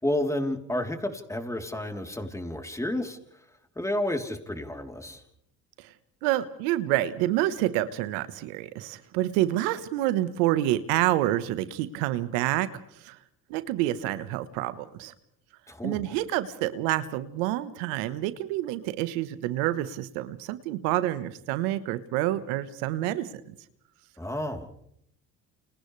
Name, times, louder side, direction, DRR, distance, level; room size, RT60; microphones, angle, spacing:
voice 1, 0.0-3.4 3.8-5.2 15.7-16.2 24.2-24.7, left 1 dB, 10° left, 4 dB, 3.5 m, -31 dB
voice 2, 6.2-12.7 13.0-13.2 13.5-15.1 15.8-23.4, right 14 dB, 80° right, 13 dB, 1.3 m, -28 dB
29.5 x 29.5 x 3.4 m, 0.72 s
hypercardioid pair, 65°, 37 cm